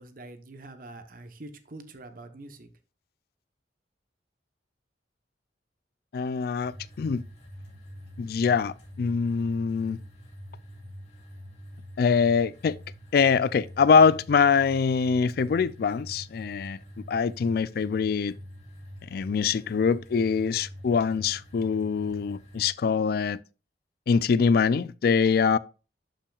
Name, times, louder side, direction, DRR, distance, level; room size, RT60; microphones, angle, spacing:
voice 1, 0.0-2.7, right 2 dB, 50° right, 1.0 m, -45 dB
voice 2, 6.1-6.7 7.0-7.2 8.2-10.0 12.0-12.8 13.1-16.8 17.1-18.3 19.1-23.4 24.1-25.6, left 5 dB, 55° left, 0.3 m, -23 dB
sound 1, 6.6-22.7, equal, 40° left, 3.3 m, -45 dB
11.5 x 5.7 x 2.4 m
head